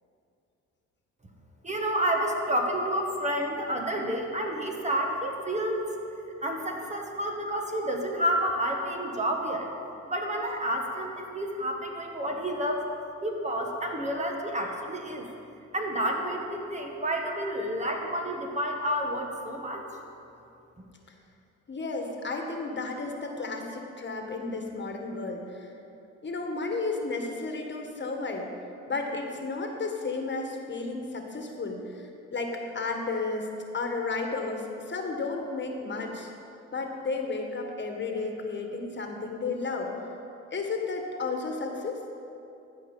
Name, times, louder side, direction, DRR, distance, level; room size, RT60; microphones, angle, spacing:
voice 1, 1.6-5.8 6.4-9.7 10.1-12.9 13.2-15.3 15.7-19.8, equal, 25° right, 2 dB, 1.4 m, -30 dB
voice 2, 21.7-25.7 26.2-28.5 28.9-33.5 33.7-36.3 36.7-39.9 40.5-42.0, left 3 dB, 35° left, 3 dB, 1.6 m, -33 dB
13.0 x 5.3 x 8.3 m, 2.7 s
cardioid pair, 90°, 30 cm